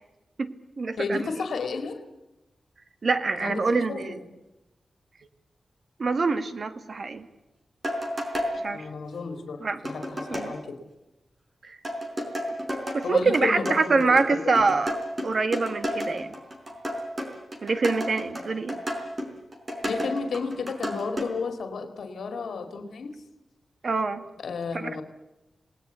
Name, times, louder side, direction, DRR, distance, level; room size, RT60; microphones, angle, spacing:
voice 1, 0.4-1.3 3.0-4.2 6.0-7.3 8.6-8.9 9.6-9.8 10.3-10.5 11.6-11.8 12.9-14.9 15.2-16.3 17.6-18.8 23.8-24.2 24.7-25.0, right 3 dB, 50° right, 10 dB, 1.7 m, -25 dB
voice 2, 1.0-2.0 3.4-4.2 8.7-10.8 13.0-14.6 19.8-23.2 24.4-25.0, left 4 dB, 90° left, 8 dB, 2.3 m, -32 dB
sound 1, 7.8-8.5 9.8-10.5 11.8-21.3, equal, 25° right, 4.8 m, -31 dB
27.5 x 19.5 x 8.2 m, 0.99 s
wide cardioid pair, 140°, 0 cm